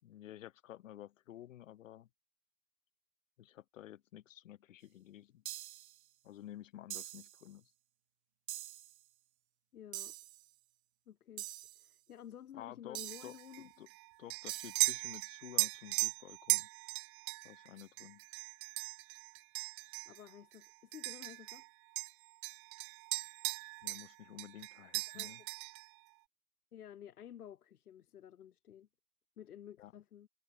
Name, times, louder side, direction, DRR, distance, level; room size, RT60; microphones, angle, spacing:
voice 1, 0.0-2.1 3.4-5.4 6.2-7.7 12.5-13.9 14.2-16.7 17.4-18.2 23.8-25.4 29.8-29.9, left 12 dB, 60° left, 2.8 m, -52 dB
sound 1, 5.5-6.0 6.9-7.4 8.5-9.0 9.9-10.4 11.4-11.9 13.0-13.5 14.5-15.0, right 14 dB, 50° right, 1.8 m, -45 dB
voice 2, 9.7-10.2 11.1-11.5 11.8-13.7 20.0-21.6 25.1-25.5 26.7-28.9 29.4-30.3, left 10 dB, 85° left, 4.8 m, -52 dB
sound 2, 13.1-21.7 22.0-24.1 24.4-25.9, right 31 dB, 20° right, 0.8 m, -38 dB
supercardioid pair, 175°, 44 cm